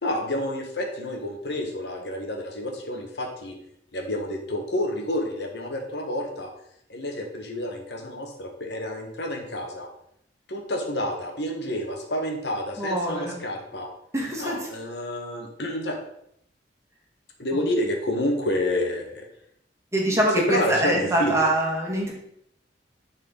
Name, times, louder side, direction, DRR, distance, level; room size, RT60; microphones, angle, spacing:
voice 1, 0.0-3.6 3.9-6.5 6.9-9.9 10.5-13.9 14.4-16.0 17.4-19.3 20.0-21.4, left 1 dB, 70° left, 1 dB, 1.5 m, -29 dB
voice 2, 12.8-13.4 14.1-14.7 19.9-22.1, right 1 dB, 15° right, -2 dB, 1.7 m, -24 dB
10.5 x 4.4 x 4.1 m, 0.71 s
head